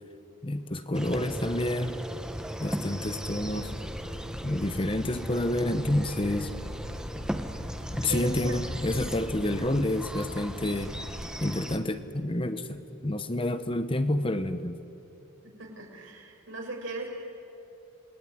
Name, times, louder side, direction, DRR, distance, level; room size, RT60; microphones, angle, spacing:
voice 1, 0.4-2.2 2.6-3.7 4.4-6.5 8.0-10.9 11.4-14.8, left 1 dB, 25° left, 10 dB, 1.0 m, -29 dB
sound 1, 0.9-11.8, equal, 5° right, 1.0 m, -37 dB
sound 2, 3.2-11.3, left 1 dB, 40° left, 1.6 m, -41 dB
voice 2, 8.1-8.6 15.4-17.2, right 2 dB, 70° right, 1 dB, 5.9 m, -39 dB
28.0 x 21.0 x 9.9 m, 2.8 s
head